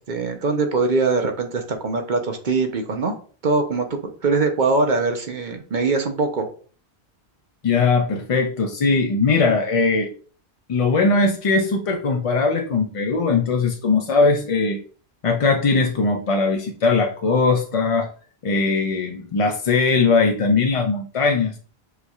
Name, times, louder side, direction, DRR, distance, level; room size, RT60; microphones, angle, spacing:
voice 1, 0.0-3.1 3.4-6.5, right 3 dB, 50° right, 5 dB, 0.8 m, -22 dB
voice 2, 7.6-10.1 10.7-14.8 15.2-18.1 18.4-21.5, left 4 dB, 50° left, 3 dB, 0.4 m, -20 dB
6.4 x 3.2 x 2.3 m, 0.41 s
omnidirectional pair, 1.1 m